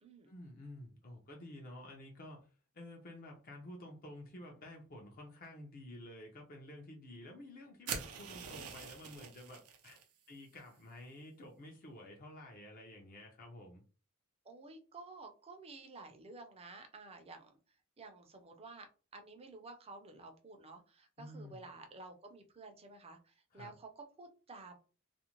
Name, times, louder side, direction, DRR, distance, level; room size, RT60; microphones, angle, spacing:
voice 1, 0.3-10.0 10.3-13.8 21.2-21.6 23.5-23.7, left 1 dB, 40° left, 1 dB, 0.6 m, -51 dB
sound 1, 7.9-10.0, right 6 dB, 85° right, 0.6 m, -44 dB
voice 2, 14.4-17.5 18.0-24.8, right 3 dB, 25° right, 5 dB, 0.5 m, -52 dB
2.5 x 2.0 x 2.9 m, 0.36 s
head